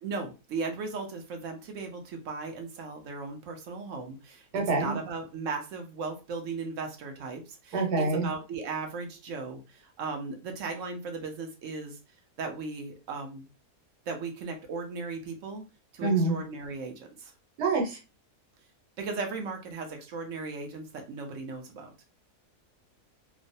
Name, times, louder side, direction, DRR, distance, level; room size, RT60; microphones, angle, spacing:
voice 1, 0.0-12.0 12.4-13.4 14.1-15.6 15.9-17.3 19.0-21.9, right 4 dB, 60° right, 4 dB, 0.9 m, -37 dB
voice 2, 4.5-5.0 7.7-8.3 16.0-16.3 17.6-18.0, right 3 dB, 80° right, 1 dB, 1.4 m, -26 dB
3.0 x 2.0 x 2.6 m, 0.30 s
omnidirectional pair, 1.7 m